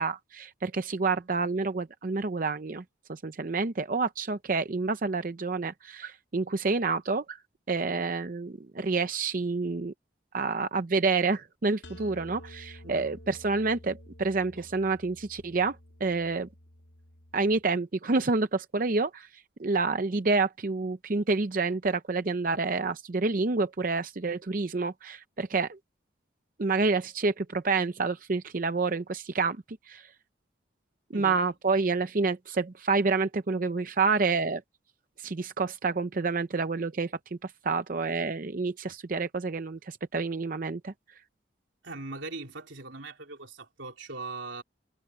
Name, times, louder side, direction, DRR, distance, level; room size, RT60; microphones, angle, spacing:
voice 1, 0.0-2.8 3.1-7.4 7.7-9.9 10.3-16.5 17.3-25.8 26.6-30.1 31.1-34.6 35.2-40.9, right 4 dB, 45° right, 0.6 m, -28 dB
sound 1, 11.8-17.6, equal, 80° left, 2.0 m, -50 dB
voice 2, 41.8-44.6, right 3 dB, 90° right, 3.6 m, -40 dB
head